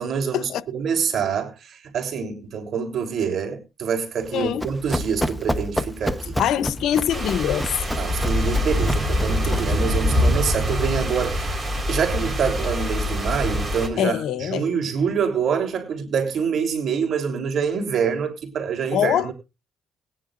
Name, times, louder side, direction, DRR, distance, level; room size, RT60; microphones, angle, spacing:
voice 1, 0.0-6.4 8.0-11.6 11.9-19.3, right 6 dB, 60° right, 3.4 m, -26 dB
Run, 4.2-9.8, equal, 5° left, 1.0 m, -29 dB
voice 2, 4.3-4.7 6.4-7.7 9.5-9.6 14.0-14.7 18.9-19.3, left 10 dB, 80° left, 0.8 m, -23 dB
sound 1, 7.1-13.9, equal, 25° right, 4.4 m, -24 dB
20.5 x 9.8 x 2.6 m
cardioid pair, 90°, 0 cm